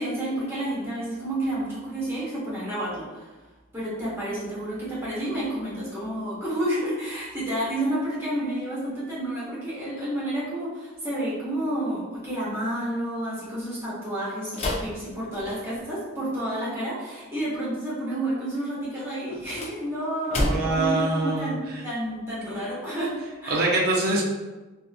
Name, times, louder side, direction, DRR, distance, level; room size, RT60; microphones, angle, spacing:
voice 1, 0.0-3.3 3.7-23.1 23.4-23.7, right 1 dB, 10° right, -9 dB, 0.9 m, -30 dB
sound 1, 14.5-15.9 19.3-20.9, left 1 dB, 30° left, 0.4 m, -30 dB
voice 2, 20.4-21.8 23.5-24.2, right 2 dB, 50° right, -2 dB, 0.5 m, -24 dB
2.7 x 2.4 x 2.4 m, 1.2 s
head